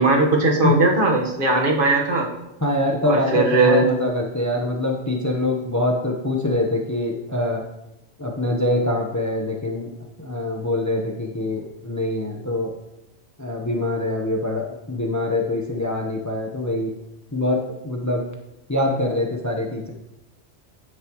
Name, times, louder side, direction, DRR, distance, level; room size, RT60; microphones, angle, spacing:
voice 1, 0.0-2.3 3.1-3.9, right 2 dB, 45° right, 0 dB, 1.6 m, -18 dB
voice 2, 2.6-7.7 8.2-9.9 10.2-12.7 13.4-16.9 17.3-18.3 18.7-19.9, left 1 dB, 15° left, 1 dB, 1.0 m, -24 dB
11.0 x 9.6 x 3.1 m, 0.91 s
omnidirectional pair, 1.3 m